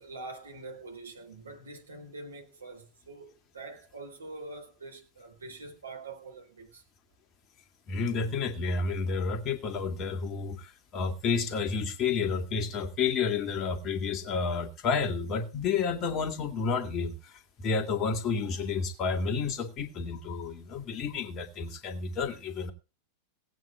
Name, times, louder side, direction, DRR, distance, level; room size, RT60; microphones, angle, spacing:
voice 1, 0.0-6.8, right 3 dB, 70° right, 3.8 m, -45 dB
voice 2, 7.9-22.7, left 5 dB, 35° left, 2.1 m, -30 dB
18.0 x 9.0 x 4.6 m
figure-of-eight pair, 90°, 0 cm